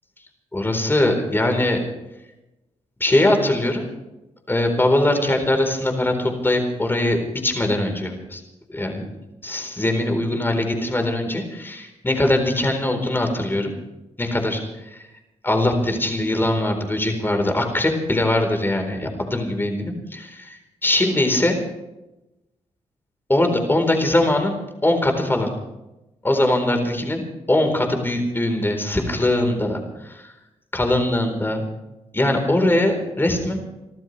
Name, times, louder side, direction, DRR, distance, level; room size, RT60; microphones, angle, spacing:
voice 1, 0.5-1.8 3.0-3.9 4.5-8.4 8.7-9.0 9.4-13.7 14.2-14.6 14.9-15.0 15.4-21.6 23.3-24.6 24.8-25.5 26.2-29.8 30.1-30.3 30.7-31.6 32.1-33.6, left 1 dB, 20° left, 4 dB, 4.1 m, -21 dB
28.5 x 14.0 x 3.4 m, 0.97 s
cardioid pair, 80°, 12 cm